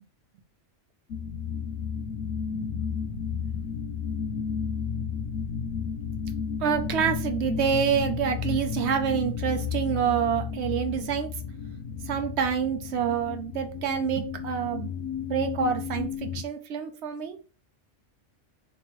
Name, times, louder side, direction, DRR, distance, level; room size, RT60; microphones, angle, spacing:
sound 1, 1.1-16.5, left 6 dB, 90° left, 0.9 m, -32 dB
voice 1, 2.5-3.2 6.6-11.3 12.1-14.9 15.3-17.4, right 8 dB, 70° right, 7 dB, 0.9 m, -27 dB
3.1 x 2.5 x 4.4 m, 0.36 s
omnidirectional pair, 1.2 m